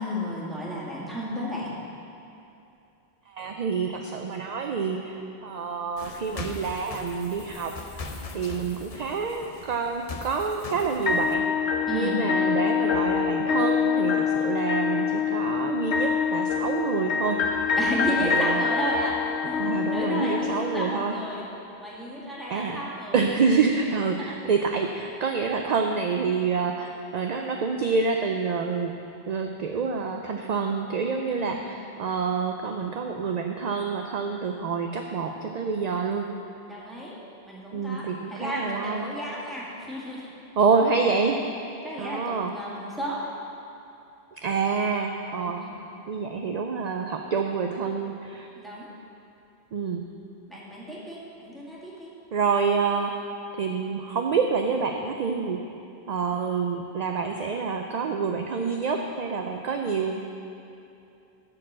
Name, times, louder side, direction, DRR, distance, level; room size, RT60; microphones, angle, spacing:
voice 1, 0.0-1.7 11.9-12.2 17.8-19.6 19.9-21.5 21.8-23.2 23.6-23.7 31.3-31.8 36.7-37.2 37.4-40.3 41.8-43.2 45.5-45.8 48.6-48.9 50.5-52.1, equal, ahead, -7 dB, 1.9 m, -33 dB
voice 2, 3.3-8.1 8.3-17.7 18.2-18.6 19.6-21.2 22.5-22.8 23.1-28.9 29.3-36.3 37.7-39.1 40.6-41.4 42.0-42.5 44.4-45.7 46.1-48.5 49.7-50.0 52.3-53.1 53.6-55.8 56.1-60.2, right 5 dB, 50° right, 3 dB, 0.5 m, -27 dB
sound 1, 6.0-11.4, left 3 dB, 40° left, 0.7 m, -40 dB
sound 2, 11.1-21.1, left 6 dB, 90° left, 1.0 m, -25 dB
11.5 x 4.5 x 7.4 m, 2.7 s
omnidirectional pair, 1.1 m